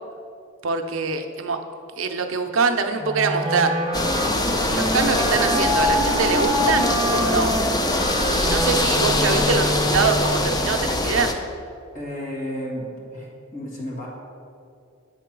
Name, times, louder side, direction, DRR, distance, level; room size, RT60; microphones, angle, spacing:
voice 1, 0.6-1.6 2.0-3.8 4.7-7.5 8.3-11.3, right 4 dB, 75° right, 5 dB, 0.6 m, -24 dB
Wind instrument woodwind instrument, 3.0-10.5, equal, 25° right, 0.8 m, -25 dB
sound 1, 3.9-11.3, left 2 dB, 20° left, 0.4 m, -23 dB
voice 2, 11.9-14.1, equal, 40° left, -3 dB, 1.7 m, -32 dB
8.9 x 3.8 x 5.9 m, 2.5 s
head